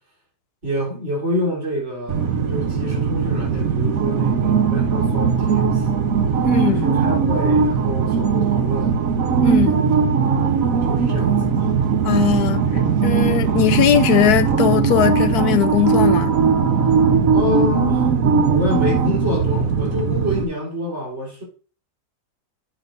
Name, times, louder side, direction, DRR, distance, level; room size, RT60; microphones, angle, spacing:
voice 1, 0.6-5.9 6.8-9.0 10.8-11.7 17.3-18.1 18.5-21.4, left 1 dB, 40° right, 4.3 m, -27 dB
sound 1, 2.1-20.4, right 6 dB, 60° right, 1.3 m, -19 dB
voice 2, 6.4-6.9 9.4-9.8 12.0-16.3, left 10 dB, 70° left, 1.2 m, -19 dB
9.0 x 8.7 x 2.7 m
omnidirectional pair, 1.8 m